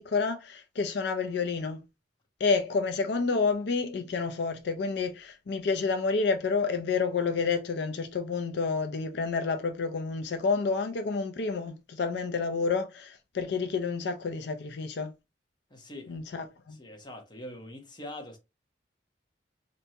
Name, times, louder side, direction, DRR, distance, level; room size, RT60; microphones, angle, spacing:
voice 1, 0.0-1.8 2.4-15.1 16.1-16.8, left 4 dB, 70° left, 0.4 m, -29 dB
voice 2, 15.7-16.1 16.7-18.4, left 1 dB, 25° left, 0.9 m, -43 dB
4.4 x 2.7 x 2.7 m
head